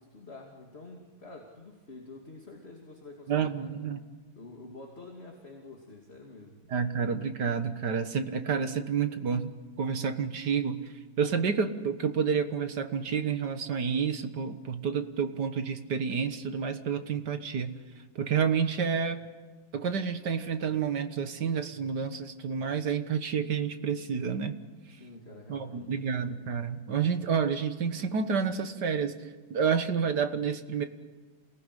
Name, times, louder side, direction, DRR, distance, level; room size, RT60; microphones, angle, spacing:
voice 1, 0.0-3.7 4.3-6.6 24.9-26.0, left 2 dB, 30° left, 0 dB, 2.8 m, -48 dB
voice 2, 3.3-4.0 6.7-9.5 9.8-10.8 11.2-17.7 18.2-19.2 19.7-24.6 25.5-29.2 29.5-30.8, right 6 dB, 55° right, 9 dB, 1.9 m, -29 dB
27.5 x 19.5 x 10.0 m, 1.4 s
omnidirectional pair, 2.2 m